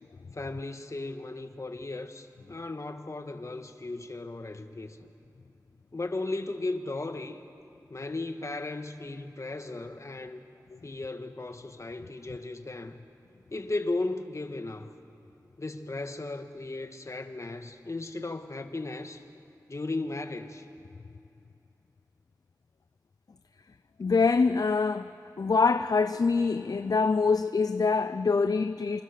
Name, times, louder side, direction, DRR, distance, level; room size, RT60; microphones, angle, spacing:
voice 1, 0.3-5.1 5.9-7.4 7.9-10.4 10.8-13.0 13.5-14.9 15.6-19.2 19.7-20.6, left 2 dB, 45° left, 1.6 m, -36 dB
voice 2, 24.0-25.1 25.4-29.0, left 4 dB, 60° left, 0.6 m, -25 dB
26.5 x 25.5 x 6.8 m
wide cardioid pair, 55°, 7 cm